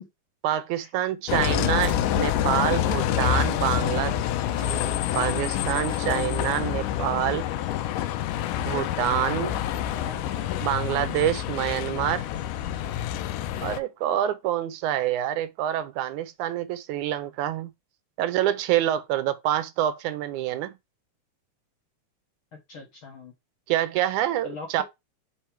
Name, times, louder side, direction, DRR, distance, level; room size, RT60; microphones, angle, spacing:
voice 1, 0.4-4.2 4.6-4.8 5.1-7.4 8.6-9.6 10.6-12.3 13.6-17.7 18.2-20.7 23.7-24.8, right 12 dB, 80° right, 2.0 m, -26 dB
Bus, 1.3-13.8, left 11 dB, 90° left, 2.3 m, -27 dB
sound 1, 1.9-2.1 2.9-3.5 3.9-4.8 5.5-6.1, right 5 dB, 60° right, 1.5 m, -41 dB
voice 2, 9.9-10.6 11.0-11.2 22.7-23.3 24.4-24.8, left 4 dB, 65° left, 1.3 m, -41 dB
5.4 x 4.5 x 4.6 m
omnidirectional pair, 3.6 m